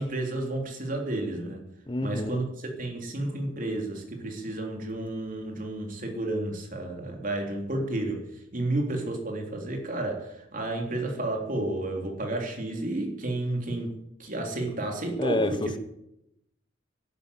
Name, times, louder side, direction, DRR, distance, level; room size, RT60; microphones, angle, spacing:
voice 1, 0.0-1.7 2.0-15.8, right 2 dB, 45° right, 3.5 m, -31 dB
voice 2, 1.9-2.4 15.2-15.8, left 1 dB, 25° left, 0.9 m, -28 dB
11.5 x 11.0 x 8.3 m
head